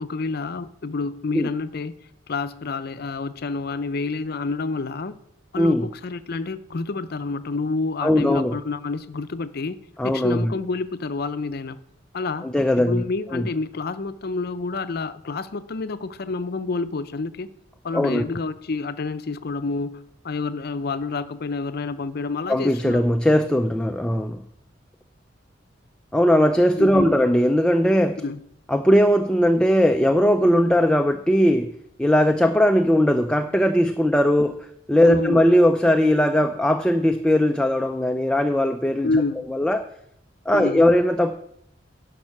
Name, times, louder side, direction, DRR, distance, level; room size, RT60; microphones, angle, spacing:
voice 1, 0.0-1.9 2.3-5.2 5.5-11.8 12.1-17.5 17.8-23.0 26.8-27.2 28.2-28.4 35.0-35.4 39.0-39.4 40.5-40.9, left 3 dB, 55° left, 13 dB, 0.5 m, -28 dB
voice 2, 5.6-5.9 8.0-8.6 10.0-10.6 12.4-13.0 13.3-13.5 17.9-18.2 22.5-24.4 26.1-28.2 28.7-31.7 32.0-39.1 39.5-39.8 40.5-41.3, equal, 5° left, 6 dB, 0.4 m, -19 dB
11.0 x 5.4 x 5.9 m, 0.72 s
head